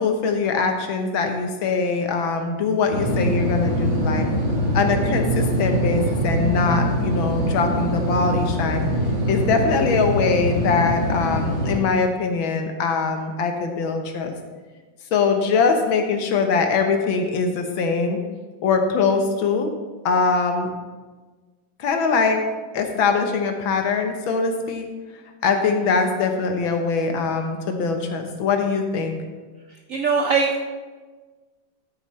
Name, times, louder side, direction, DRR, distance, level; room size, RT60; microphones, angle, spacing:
voice 1, 0.0-4.3 4.7-8.9 9.3-14.3 15.1-18.2 18.6-19.7 20.1-20.7 21.8-22.4 22.7-24.9 25.4-29.2, left 4 dB, 85° left, 5 dB, 1.8 m, -22 dB
sound 1, 2.9-11.8, equal, 40° right, 1.6 m, -23 dB
voice 2, 29.9-30.6, right 5 dB, 70° right, 2 dB, 0.7 m, -21 dB
13.0 x 7.1 x 3.2 m, 1.3 s
omnidirectional pair, 2.2 m